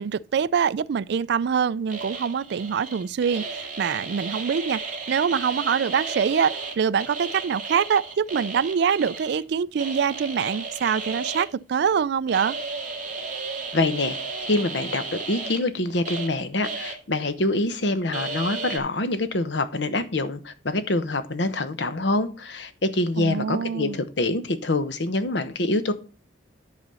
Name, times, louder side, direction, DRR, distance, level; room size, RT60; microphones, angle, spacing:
voice 1, 0.0-4.8 5.1-12.6 23.2-24.0, right 7 dB, 60° right, 0.3 m, -24 dB
sound 1, 1.9-6.7 7.0-9.4 9.7-11.5 12.3-16.3 16.6-16.9 17.2-17.3 18.1-18.8, right 4 dB, 45° right, 2.3 m, -34 dB
voice 2, 13.7-25.9, left 2 dB, 65° left, 1.0 m, -25 dB
10.5 x 4.0 x 6.8 m
head